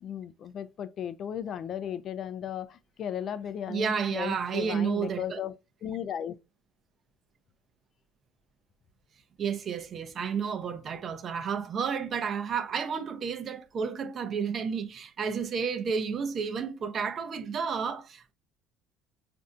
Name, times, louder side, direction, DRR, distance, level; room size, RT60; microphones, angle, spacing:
voice 1, 0.0-5.5 5.8-6.3, left 9 dB, 50° left, 0.3 m, -36 dB
voice 2, 3.7-5.4 9.4-18.3, right 6 dB, 45° right, 0.5 m, -31 dB
4.1 x 2.5 x 2.4 m
hypercardioid pair, 70°, 0 cm